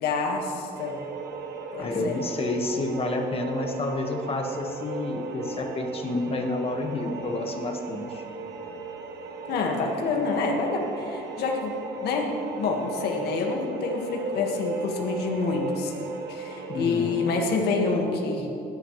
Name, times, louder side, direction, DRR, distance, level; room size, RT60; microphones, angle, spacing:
voice 1, 0.0-1.0 1.7-2.2 9.5-15.9 16.3-18.5, left 4 dB, 75° left, 0 dB, 1.9 m, -27 dB
sound 1, 0.7-17.6, right 3 dB, 75° right, 1.3 m, -37 dB
voice 2, 1.7-8.2 16.7-17.1, left 2 dB, 35° left, 3 dB, 1.6 m, -29 dB
20.5 x 10.5 x 3.3 m, 2.8 s
cardioid pair, 110°, 17 cm